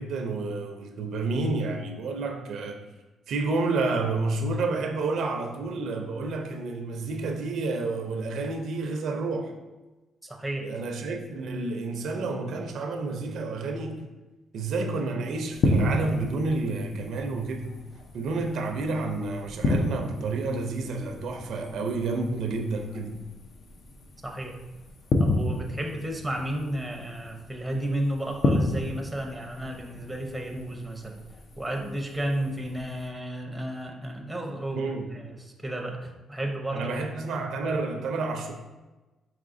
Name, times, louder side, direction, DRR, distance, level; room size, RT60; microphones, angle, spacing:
voice 1, 0.0-2.8 3.3-9.5 10.6-14.1 14.5-17.8 18.1-23.2 34.7-35.1 36.7-38.5, right 3 dB, 70° right, 4 dB, 0.4 m, -30 dB
voice 2, 10.2-10.7 24.2-24.6 25.2-31.2 31.6-36.9 37.2-37.4, right 1 dB, 5° right, 2 dB, 0.6 m, -33 dB
sound 1, 15.5-33.1, left 2 dB, 55° left, 0.4 m, -32 dB
4.8 x 3.0 x 2.6 m, 1.1 s
cardioid pair, 90°, 0 cm